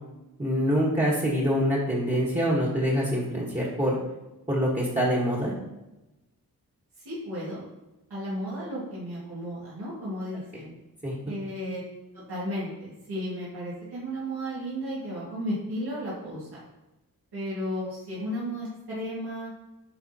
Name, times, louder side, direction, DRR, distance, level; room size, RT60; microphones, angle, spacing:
voice 1, 0.4-4.0 4.5-5.5 11.0-11.1, equal, 20° right, -4 dB, 1.4 m, -25 dB
voice 2, 7.0-7.6 8.1-10.7 11.2-11.8 12.1-16.6 17.3-19.5, equal, 90° right, -9 dB, 2.1 m, -34 dB
9.9 x 3.6 x 2.9 m, 0.98 s
wide cardioid pair, 85°, 37 cm